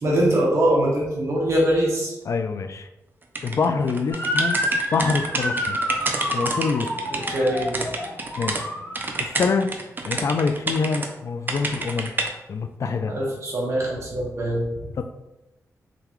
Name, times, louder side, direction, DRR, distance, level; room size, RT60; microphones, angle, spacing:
voice 1, 0.0-2.1 7.1-7.8 13.1-14.6, right 1 dB, 55° right, -3 dB, 1.4 m, -22 dB
voice 2, 2.3-2.9 3.4-4.6 4.9-5.8 6.2-6.9 8.4-8.7 9.2-9.7 10.1-12.1 12.5-13.1 15.0-15.1, left 4 dB, 55° left, 8 dB, 0.3 m, -25 dB
sound 1, 3.4-8.6 9.0-11.1 11.5-12.3, right 3 dB, 35° right, 0.5 m, -29 dB
Motor vehicle (road) / Siren, 4.1-9.4, equal, 30° left, 1.5 m, -28 dB
3.8 x 3.3 x 3.0 m, 0.99 s
wide cardioid pair, 100°, 6 cm